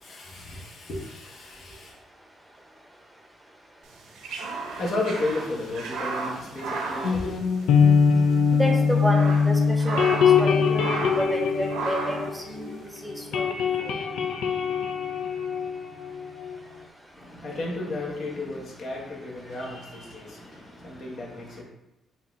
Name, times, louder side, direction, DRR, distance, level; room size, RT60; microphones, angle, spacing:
voice 1, 0.0-2.0 4.7-7.5 17.1-21.6, left 2 dB, 60° left, -3 dB, 1.3 m, -33 dB
sound 1, 3.9-8.0 8.3-8.4 8.9-10.5 10.7-11.3 11.7-12.3, right 3 dB, 85° right, 0.6 m, -33 dB
sound 2, 7.0-12.9 13.1-16.6, left 6 dB, 80° left, 0.5 m, -22 dB
voice 2, 8.5-12.7 13.0-13.5, right 1 dB, 5° right, 1 dB, 0.8 m, -30 dB
4.1 x 2.8 x 3.6 m, 0.93 s
cardioid pair, 90°, 0 cm